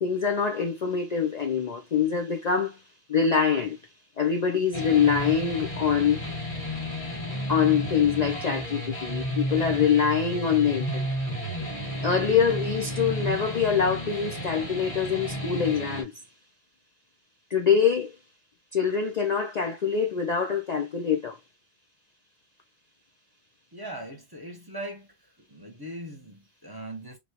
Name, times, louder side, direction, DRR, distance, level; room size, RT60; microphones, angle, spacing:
voice 1, 0.0-2.8 3.1-3.8 4.2-6.2 7.5-11.2 12.0-16.1 17.5-18.1 18.7-21.4, left 7 dB, 50° left, 0.5 m, -24 dB
sound 1, 4.7-16.0, equal, 30° left, 1.5 m, -32 dB
voice 2, 23.7-25.1 25.5-27.2, right 1 dB, 25° right, 0.8 m, -39 dB
3.0 x 2.7 x 2.8 m
omnidirectional pair, 1.1 m